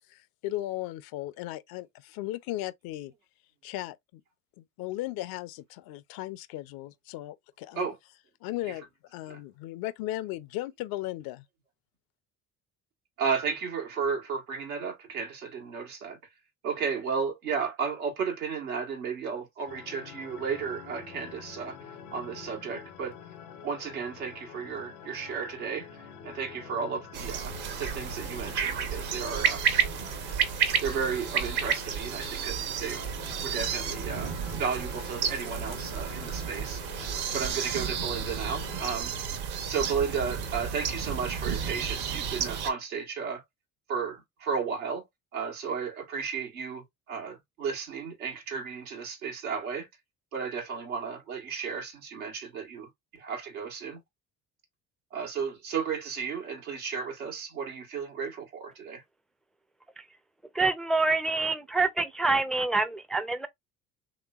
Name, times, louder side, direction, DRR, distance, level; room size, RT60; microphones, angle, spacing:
voice 1, 0.1-3.1 3.6-4.2 4.6-7.9 8.4-11.5, left 15 dB, 60° left, 0.5 m, -36 dB
voice 2, 13.2-16.2 16.6-21.8 22.1-23.2 23.6-25.9 26.2-29.6 30.8-33.0 33.4-36.8 37.3-39.1 39.7-43.4 43.9-45.0 45.3-49.9 50.3-54.0 55.1-59.0, right 6 dB, 90° right, 1.3 m, -33 dB
sound 1, 19.7-39.0, left 8 dB, 85° left, 0.8 m, -47 dB
sound 2, 27.1-42.7, right 7 dB, 65° right, 1.0 m, -31 dB
voice 3, 60.5-63.5, right 3 dB, ahead, 0.4 m, -26 dB
3.2 x 3.0 x 2.3 m
hypercardioid pair, 65°, 42 cm